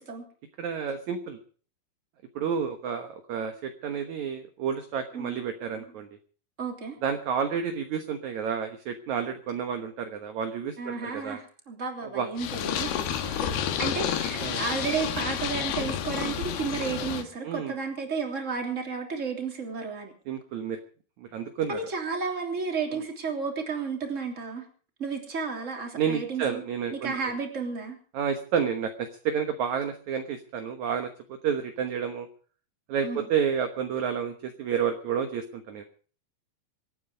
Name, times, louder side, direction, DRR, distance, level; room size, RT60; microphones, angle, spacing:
voice 1, 0.6-1.4 2.4-6.1 7.0-11.4 12.1-12.3 13.2-13.4 14.4-14.6 17.4-17.7 20.3-20.8 21.2-21.8 25.9-27.1 28.1-32.3 32.9-35.8, right 7 dB, 60° right, 6 dB, 2.2 m, -30 dB
voice 2, 6.6-7.0 10.8-12.9 13.4-20.1 21.7-24.6 25.0-26.6 26.9-27.9 33.0-33.3, right 5 dB, 20° right, 3 dB, 3.1 m, -32 dB
Purr, 12.4-17.2, left 9 dB, 85° left, 3.5 m, -30 dB
26.5 x 9.5 x 5.1 m, 0.42 s
omnidirectional pair, 4.4 m